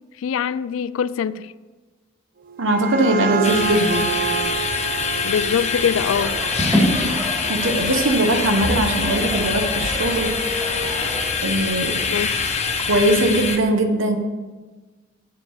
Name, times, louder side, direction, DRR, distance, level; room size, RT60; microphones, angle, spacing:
voice 1, 0.2-1.5 5.2-6.4 12.1-12.4, left 7 dB, 85° left, 0.3 m, -23 dB
sound 1, 2.4-7.9, right 7 dB, 45° right, 0.5 m, -29 dB
voice 2, 2.6-4.1 7.5-10.4 11.4-12.1 12.9-14.2, right 1 dB, 75° right, 1.0 m, -20 dB
sound 2, 3.4-13.6, left 5 dB, 35° left, 0.8 m, -25 dB
sound 3, 6.1-11.2, equal, 15° right, 2.5 m, -26 dB
7.6 x 4.9 x 7.0 m
head